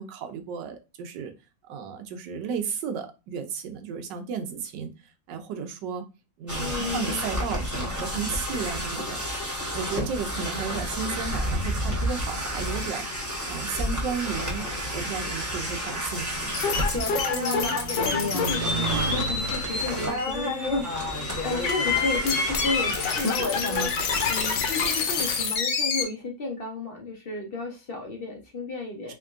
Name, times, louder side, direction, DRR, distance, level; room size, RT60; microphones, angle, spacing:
voice 1, 0.0-1.3 1.7-4.9 5.3-6.1 6.4-9.3 9.7-13.1 13.5-14.6 14.9-16.6, right 6 dB, 85° right, 7 dB, 1.3 m, -33 dB
sound 1, 6.5-23.9, equal, 10° right, 1.0 m, -30 dB
voice 2, 6.6-7.3 17.3-23.9 24.3-29.1, left 3 dB, 55° left, 2 dB, 0.6 m, -33 dB
Motorcycle, 13.3-22.0 22.8-23.3, right 5 dB, 55° right, 1.1 m, -38 dB
sound 2, 16.5-26.0, left 5 dB, 90° left, 1.4 m, -28 dB
3.5 x 3.4 x 2.5 m, 0.28 s
omnidirectional pair, 1.9 m